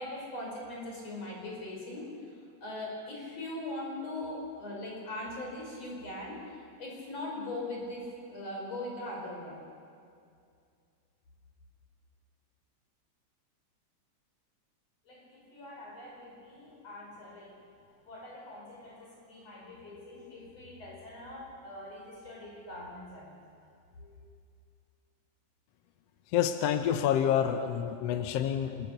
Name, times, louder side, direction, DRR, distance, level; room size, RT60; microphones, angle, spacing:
voice 1, 0.0-2.1 2.6-6.4 6.8-9.6 15.1-17.6 18.1-23.3 24.0-24.1, left 1 dB, 55° left, -2 dB, 6.4 m, -41 dB
voice 2, 26.3-28.9, left 9 dB, 70° left, 8 dB, 1.6 m, -28 dB
26.5 x 20.5 x 6.7 m, 2.3 s
omnidirectional pair, 3.5 m